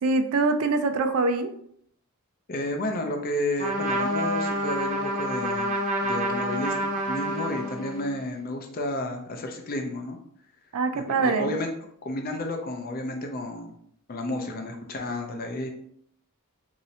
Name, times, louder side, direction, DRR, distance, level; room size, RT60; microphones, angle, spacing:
voice 1, 0.0-1.5 10.7-11.6, right 3 dB, 70° right, 8 dB, 0.4 m, -24 dB
voice 2, 2.5-5.7 6.0-10.2 11.1-11.7 12.0-13.7 14.1-15.7, left 1 dB, 40° left, 4 dB, 0.5 m, -31 dB
Trumpet, 3.6-8.1, equal, 35° right, 0.6 m, -28 dB
3.1 x 2.7 x 2.7 m, 0.68 s
head